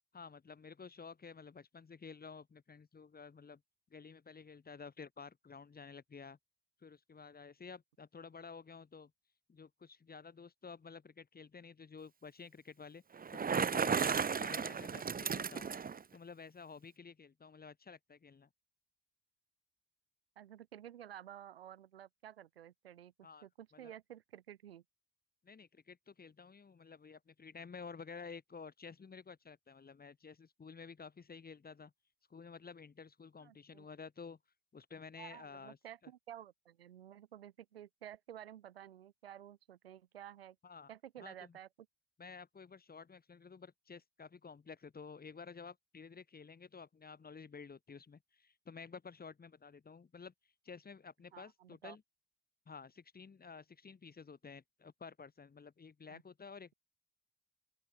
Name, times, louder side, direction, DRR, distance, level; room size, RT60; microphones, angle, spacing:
voice 1, 0.1-3.6 3.9-6.4 6.8-9.1 9.5-13.0 13.3-15.7 16.1-18.5 23.2-23.5 23.7-23.9 25.4-31.9 32.3-34.4 34.7-35.8 40.6-40.9 41.2-41.5 42.2-50.3 50.6-52.0 52.7-56.7, left 5 dB, 30° left, 2.7 m, -52 dB
Bicycle, 13.2-16.0, right 6 dB, 30° right, 1.3 m, -34 dB
voice 2, 20.4-24.8 33.4-33.9 35.1-40.6 40.9-41.7 51.3-52.0 56.1-56.2, right 11 dB, 90° right, 2.3 m, -52 dB
open air
hypercardioid pair, 50°, 29 cm